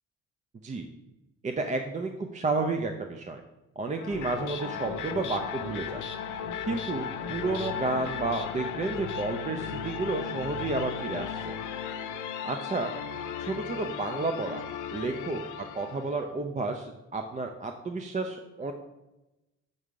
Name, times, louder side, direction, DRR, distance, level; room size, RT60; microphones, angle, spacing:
voice 1, 1.4-3.4 3.8-6.0 6.6-11.6 12.4-12.9 13.4-14.6 14.9-15.4 15.8-18.7, right 3 dB, 25° right, 5 dB, 0.5 m, -31 dB
sound 1, 4.0-16.2, left 8 dB, 80° left, 0.6 m, -36 dB
6.6 x 3.6 x 4.7 m, 0.99 s
cardioid pair, 90°, 30 cm